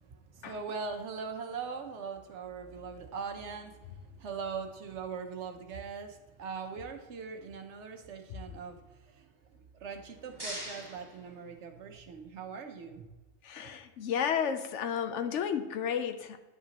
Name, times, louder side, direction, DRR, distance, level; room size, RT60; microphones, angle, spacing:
voice 1, 0.1-8.8 9.1-9.3 9.8-13.1, right 5 dB, 70° right, 5 dB, 1.1 m, -41 dB
sound 1, 9.9-12.1, right 1 dB, 20° right, 1.7 m, -45 dB
voice 2, 13.4-16.4, left 8 dB, 70° left, 8 dB, 0.9 m, -32 dB
10.0 x 5.4 x 2.9 m, 1.2 s
omnidirectional pair, 1.3 m